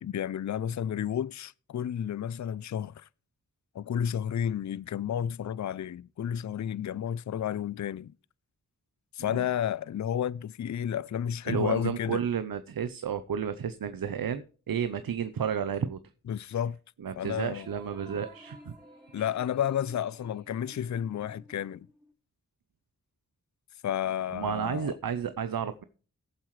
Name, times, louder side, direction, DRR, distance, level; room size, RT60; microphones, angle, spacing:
voice 1, 0.0-3.1 3.7-8.1 9.1-12.2 16.3-16.8 17.2-17.7 19.1-21.9 23.8-25.0, left 9 dB, 55° left, 0.4 m, -31 dB
voice 2, 11.5-16.0 17.0-18.6 19.2-19.3 24.3-25.8, right 7 dB, 85° right, 0.7 m, -32 dB
sound 1, 17.4-22.1, right 1 dB, 10° right, 4.0 m, -54 dB
17.5 x 7.4 x 3.2 m
cardioid pair, 40°, 34 cm